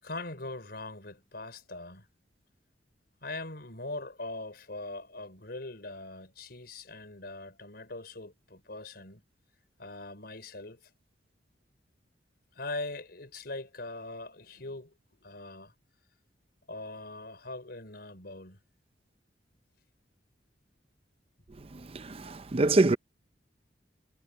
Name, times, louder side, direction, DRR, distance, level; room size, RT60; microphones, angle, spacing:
voice 1, 0.0-2.1 3.2-9.2 9.8-10.9 12.5-14.9 15.2-15.7 16.7-18.6, left 2 dB, 60° left, 5.1 m, -41 dB
voice 2, 21.9-23.0, right 2 dB, 35° right, 0.6 m, -25 dB
head